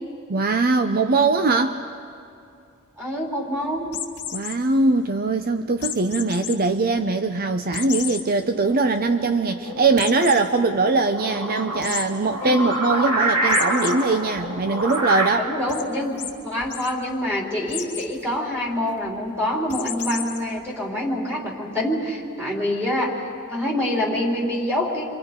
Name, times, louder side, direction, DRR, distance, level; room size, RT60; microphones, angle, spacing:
voice 1, 0.3-1.8 4.3-15.5, right 3 dB, 45° right, 8 dB, 0.6 m, -21 dB
voice 2, 3.0-3.9 12.4-12.6 15.4-23.2 23.5-25.1, left 1 dB, 10° right, -3 dB, 3.8 m, -26 dB
sound 1, 3.9-4.5 5.8-6.5 7.0-7.1 7.7-8.2 8.7-8.8 9.1-9.2 10.0-10.4 11.8-12.0 13.5-13.9 14.4-15.0 15.7-15.8 16.2-16.3 16.6-16.9 17.7-18.1 19.7-20.4, left 10 dB, 80° left, 2.1 m, -31 dB
sound 2, 8.4-15.3, right 1 dB, 75° right, 2.6 m, -27 dB
29.0 x 25.0 x 5.2 m, 2.5 s
head